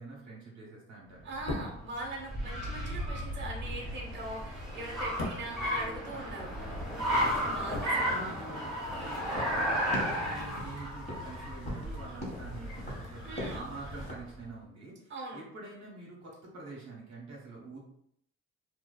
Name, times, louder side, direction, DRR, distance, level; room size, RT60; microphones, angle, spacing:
voice 1, 0.0-1.3 2.4-2.9 6.9-7.6 8.0-17.8, right 3 dB, 70° right, -3 dB, 0.9 m, -47 dB
voice 2, 1.2-6.5 7.5-8.3 9.0-9.2 13.2-13.6 15.1-15.4, right 2 dB, 40° right, -1 dB, 0.9 m, -41 dB
sound 1, 1.3-6.6 6.9-8.7 9.0-9.1, left 2 dB, 65° left, 0.8 m, -42 dB
Car, 1.3-14.2, equal, ahead, 1.2 m, -34 dB
sound 2, 8.9-14.1, equal, 20° left, 1.0 m, -42 dB
2.6 x 2.1 x 2.2 m, 0.68 s
cardioid pair, 90°, 30 cm